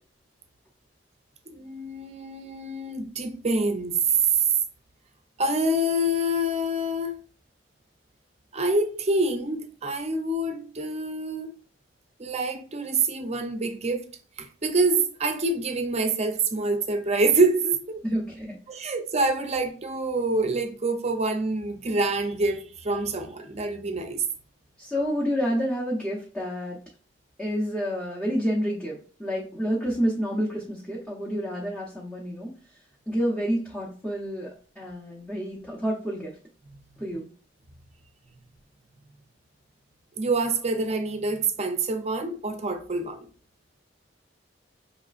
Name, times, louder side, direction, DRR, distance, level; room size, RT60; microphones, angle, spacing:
voice 1, 1.5-3.9 5.4-7.2 8.5-11.5 12.2-14.1 14.4-18.0 18.7-24.2 40.2-43.3, right 2 dB, 35° right, 0.6 m, -26 dB
voice 2, 18.0-18.6 24.8-26.8 27.4-32.5 33.1-36.4 37.0-37.3, equal, 5° left, 0.8 m, -29 dB
4.9 x 3.1 x 2.4 m
head